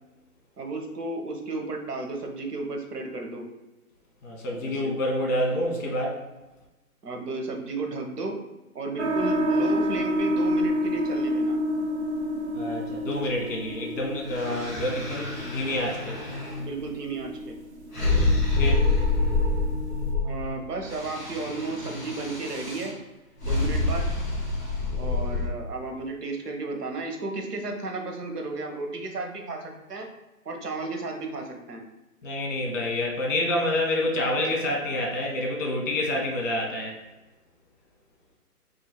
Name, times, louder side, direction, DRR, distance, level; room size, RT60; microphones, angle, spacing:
voice 1, 0.6-3.5 4.5-4.9 7.0-8.4 8.7-11.6 14.4-14.7 16.6-17.6 20.2-22.9 23.4-24.1 25.0-30.1 30.4-31.8, right 3 dB, 85° right, 2 dB, 1.1 m, -33 dB
voice 2, 4.2-6.2 12.5-16.2 18.6-18.9 32.2-37.0, left 1 dB, 55° left, -1 dB, 1.4 m, -28 dB
sound 1, 9.0-20.1, equal, 50° right, 0.6 m, -30 dB
sound 2, 14.2-16.6 17.9-20.5 20.8-22.9 23.4-25.5, left 2 dB, 10° left, 0.8 m, -27 dB
3.0 x 2.7 x 4.3 m, 1.1 s
hypercardioid pair, 160°, 46 cm